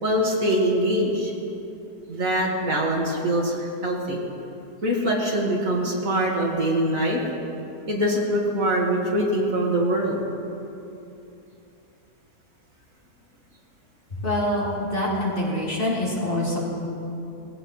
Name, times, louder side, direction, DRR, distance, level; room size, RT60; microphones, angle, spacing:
voice 1, 0.0-1.3 2.1-4.2 4.8-7.2 7.9-10.2, right 1 dB, 60° right, -2 dB, 2.3 m, -23 dB
voice 2, 14.2-16.6, left 1 dB, 35° left, -7 dB, 3.4 m, -25 dB
20.5 x 16.0 x 3.2 m, 2.8 s
omnidirectional pair, 1.7 m